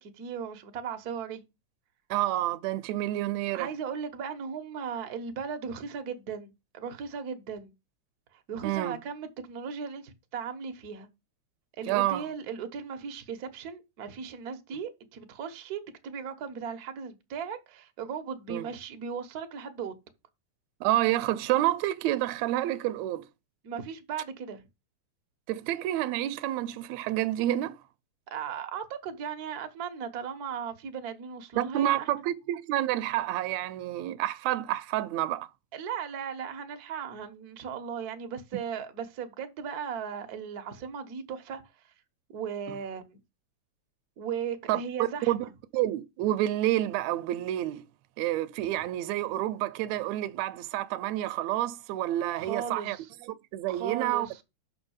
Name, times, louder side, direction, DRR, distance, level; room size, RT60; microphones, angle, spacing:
voice 1, 0.0-1.4 3.5-7.7 8.3-11.1 11.8-19.9 23.6-24.7 28.3-32.1 35.7-41.9 42.3-43.2 44.2-45.5 52.3-53.1 53.7-54.4, right 7 dB, 55° right, 1.0 m, -37 dB
voice 2, 2.1-3.7 8.6-9.0 11.9-12.3 18.5-18.7 20.8-23.3 25.5-27.8 31.6-35.5 44.7-44.8 45.3-45.5 45.7-47.9 48.2-53.0 53.3-54.4, right 14 dB, 75° right, 1.9 m, -29 dB
6.1 x 6.0 x 7.1 m
omnidirectional pair, 3.4 m